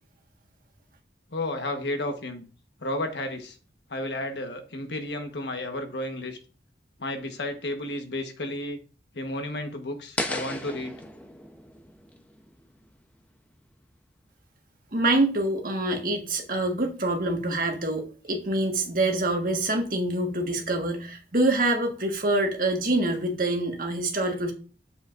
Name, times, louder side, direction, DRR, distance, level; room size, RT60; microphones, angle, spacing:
voice 1, 1.3-2.4 2.8-3.5 3.9-6.4 7.0-8.8 9.1-11.0, left 1 dB, 70° left, 5 dB, 1.2 m, -32 dB
sound 1, 10.2-13.2, left 1 dB, 10° left, 0.7 m, -35 dB
voice 2, 14.9-24.5, right 2 dB, 50° right, 3 dB, 1.5 m, -26 dB
8.6 x 7.4 x 2.5 m, 0.37 s
head